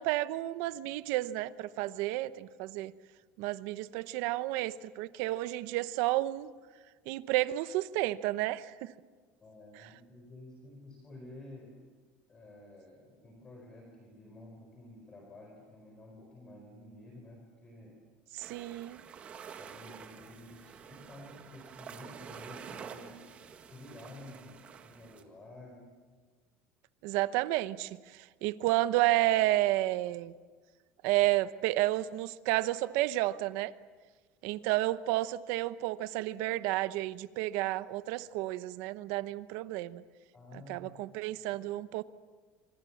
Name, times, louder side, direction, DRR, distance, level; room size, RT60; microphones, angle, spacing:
voice 1, 0.0-2.9 3.4-6.5 7.1-8.9 18.3-19.0 27.0-28.0 28.4-30.3 31.0-33.7 34.4-40.0 40.7-42.0, right 16 dB, 70° right, 14 dB, 0.9 m, -31 dB
voice 2, 9.4-11.8 12.3-18.0 19.6-23.3 23.6-25.9 40.3-40.9 41.5-41.6, left 1 dB, 20° left, 2 dB, 4.3 m, -51 dB
sound 1, 18.4-25.2, right 7 dB, 30° right, 1.9 m, -48 dB
27.0 x 27.0 x 7.2 m, 1.4 s
cardioid pair, 165°, 4 cm